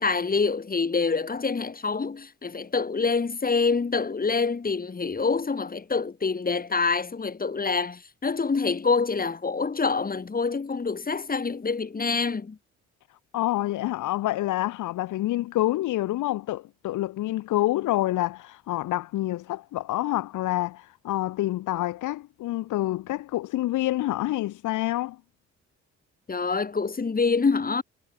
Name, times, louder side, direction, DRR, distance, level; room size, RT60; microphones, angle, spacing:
voice 1, 0.0-12.6 26.3-27.8, left 4 dB, 30° left, 3.0 m, -26 dB
voice 2, 13.3-25.2, left 15 dB, 85° left, 1.5 m, -27 dB
cardioid pair, 90°, 30 cm